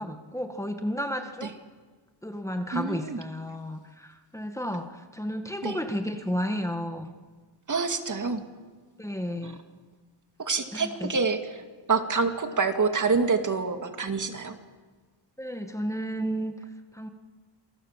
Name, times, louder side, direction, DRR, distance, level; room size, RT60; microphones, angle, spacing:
voice 1, 0.0-1.5 2.2-7.1 9.0-9.6 10.7-11.1 15.4-16.5 16.9-17.1, equal, 5° left, 5 dB, 1.7 m, -32 dB
voice 2, 2.7-3.2 5.6-5.8 7.7-8.4 9.4-9.5 10.4-14.6, right 4 dB, 45° right, 6 dB, 2.3 m, -27 dB
27.5 x 23.5 x 7.5 m, 1.4 s
wide cardioid pair, 125°, 43 cm